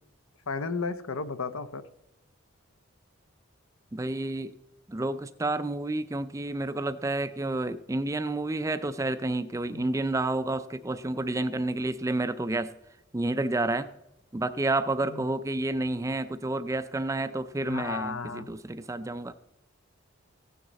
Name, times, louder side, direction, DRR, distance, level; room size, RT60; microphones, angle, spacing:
voice 1, 0.5-1.8 9.7-9.8 15.1-15.2 17.7-18.5, left 4 dB, 85° left, 12 dB, 0.7 m, -33 dB
voice 2, 3.9-4.5 4.9-12.7 13.1-13.9 14.3-19.3, right 2 dB, 15° right, 13 dB, 0.4 m, -30 dB
15.5 x 9.4 x 4.1 m, 0.93 s
head